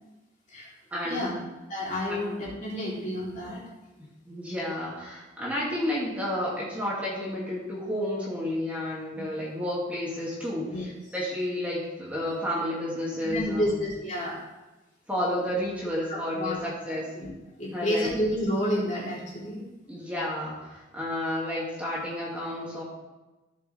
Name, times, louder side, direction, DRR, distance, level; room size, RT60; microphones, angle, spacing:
voice 1, 0.9-1.4 2.1-2.2 4.3-10.7 11.1-13.7 15.1-17.1 17.7-18.1 19.9-22.8, left 1 dB, 10° right, -6 dB, 2.2 m, -31 dB
voice 2, 1.7-3.6 10.7-10.9 13.2-14.4 16.1-16.6 16.9-17.3 17.6-19.6, left 1 dB, 40° left, -6 dB, 3.3 m, -30 dB
15.0 x 6.9 x 3.4 m, 1.1 s
head